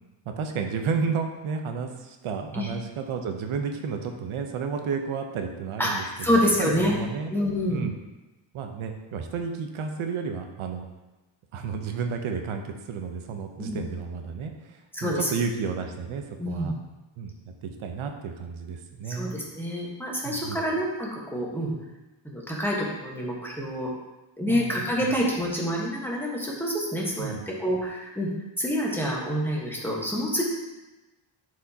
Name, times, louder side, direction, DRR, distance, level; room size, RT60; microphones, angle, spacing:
voice 1, 0.2-7.3 7.7-7.9 8.5-10.9 11.5-16.7 17.2-19.4 20.2-20.7 24.5-25.1 27.2-27.5, right 5 dB, 85° right, 5 dB, 0.9 m, -32 dB
voice 2, 5.8-7.0 7.3-7.8 13.6-13.8 14.9-15.3 16.4-16.7 19.1-21.7 22.2-23.9 24.4-28.3 28.6-30.4, equal, 5° left, -4 dB, 1.3 m, -27 dB
10.0 x 4.8 x 2.9 m, 1.1 s
wide cardioid pair, 140°, 48 cm